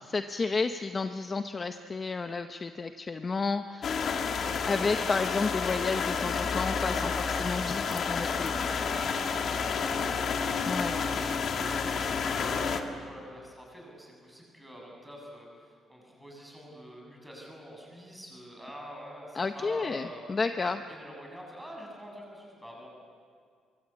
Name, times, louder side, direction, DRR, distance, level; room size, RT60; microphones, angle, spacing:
voice 1, 0.0-4.1 4.7-9.2 10.7-11.0 19.3-20.8, left 4 dB, 25° left, 8 dB, 0.7 m, -32 dB
sound 1, 3.8-12.8, left 5 dB, 45° left, 1.8 m, -30 dB
voice 2, 4.0-4.4 9.5-10.1 10.5-20.2 20.9-22.9, equal, 5° right, -1 dB, 6.9 m, -46 dB
24.0 x 24.0 x 8.6 m, 2.1 s
cardioid pair, 155°, 0 cm